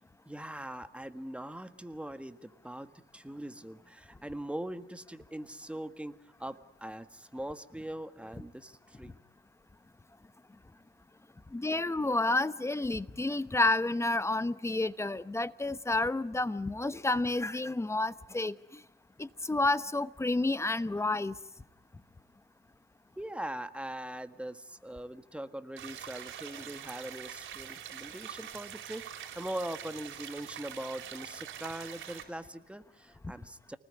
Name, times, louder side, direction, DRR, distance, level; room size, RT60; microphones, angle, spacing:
voice 1, 0.2-9.2 23.2-33.8, right 1 dB, 5° right, 1.6 m, -41 dB
voice 2, 11.5-18.8 19.2-21.4, left 2 dB, 15° left, 0.9 m, -30 dB
sound 1, 25.8-32.2, right 10 dB, 75° right, 4.7 m, -44 dB
29.0 x 20.0 x 9.6 m
cardioid pair, 90°, 20 cm